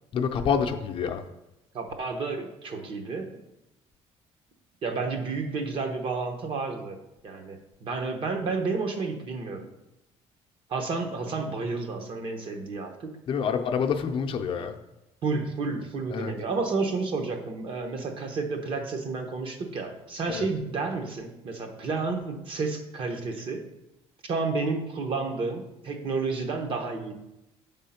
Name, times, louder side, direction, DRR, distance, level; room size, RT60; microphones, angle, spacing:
voice 1, 0.1-1.2 13.3-14.8 16.1-16.3 20.3-20.5, left 6 dB, 50° left, 5 dB, 0.6 m, -27 dB
voice 2, 1.7-3.3 4.8-7.0 7.2-9.7 10.7-13.1 15.2-23.6 24.2-27.1, right 4 dB, 50° right, 5 dB, 1.0 m, -31 dB
7.3 x 3.6 x 5.7 m, 0.91 s
cardioid pair, 135°, 12 cm